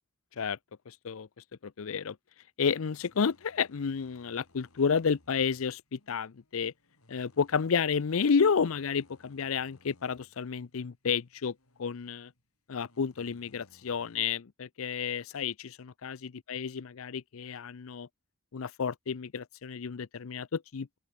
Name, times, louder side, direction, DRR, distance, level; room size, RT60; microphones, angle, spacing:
voice 1, 0.9-1.3 1.6-2.2 2.6-6.7 7.1-12.3 12.7-18.1 18.5-21.0, left 6 dB, 65° left, 0.5 m, -31 dB
sound 1, 2.6-14.2, left 1 dB, 85° left, 7.5 m, -65 dB
open air
head